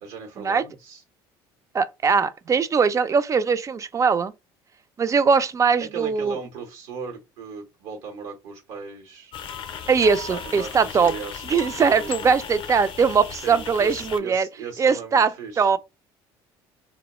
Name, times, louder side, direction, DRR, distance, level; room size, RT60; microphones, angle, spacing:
voice 1, 0.0-1.0 5.9-9.3 10.3-12.4 13.3-15.8, right 5 dB, 75° right, 0.9 m, -38 dB
voice 2, 1.7-4.3 5.0-6.4 9.9-11.1 11.5-14.5 14.8-15.3 15.6-15.8, right 5 dB, 30° right, 0.3 m, -21 dB
sound 1, 9.3-14.2, left 6 dB, 45° left, 0.5 m, -36 dB
2.2 x 2.0 x 2.9 m
supercardioid pair, 80°, 11 cm